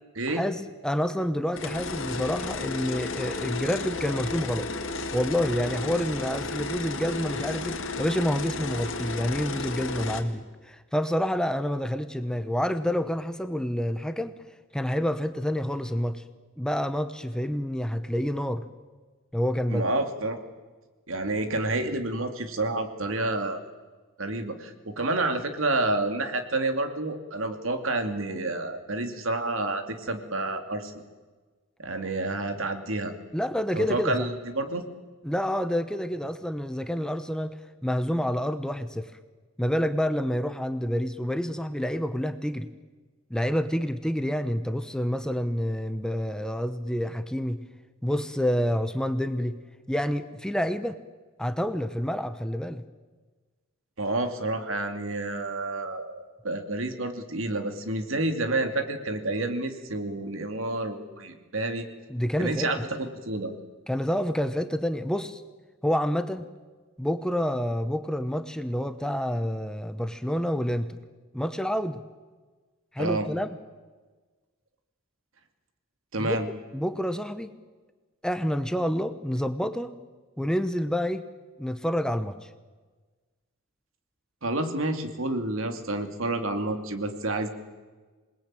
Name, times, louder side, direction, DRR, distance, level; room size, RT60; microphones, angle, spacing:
voice 1, 0.3-4.7 5.1-14.3 14.7-16.2 16.6-18.6 19.3-19.9 33.3-34.2 35.2-37.6 37.8-39.1 39.6-42.7 43.3-47.6 48.0-49.6 49.9-51.0 51.4-52.8 62.1-63.0 63.9-65.4 65.8-66.5 67.0-71.0 71.3-72.0 72.9-73.5 76.2-76.5 76.7-77.5 78.2-79.9 80.4-81.2 81.6-82.5, equal, 5° left, 10 dB, 0.9 m, -28 dB
sound 1, 1.5-10.2, left 3 dB, 60° left, 2.4 m, -33 dB
voice 2, 19.7-20.4 21.1-23.6 24.2-31.0 31.8-33.1 33.7-34.8 54.0-61.9 62.4-63.5 73.0-73.3 76.1-76.5 84.4-87.5, right 2 dB, 70° right, 7 dB, 2.7 m, -29 dB
27.5 x 20.0 x 9.0 m, 1.3 s
head